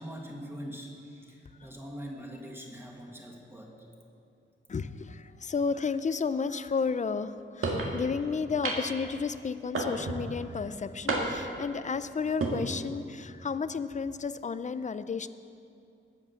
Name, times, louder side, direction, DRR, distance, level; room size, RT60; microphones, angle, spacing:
voice 1, 0.0-3.8, equal, 10° right, -1 dB, 1.8 m, -43 dB
voice 2, 4.7-15.3, left 5 dB, 35° left, 13 dB, 0.4 m, -32 dB
sound 1, 7.6-7.9 8.6-9.0 9.7-10.2 11.1-11.6 12.2-12.6, right 2 dB, 85° right, 1.8 m, -30 dB
19.5 x 7.9 x 7.0 m, 2.5 s
wide cardioid pair, 175°, 21 cm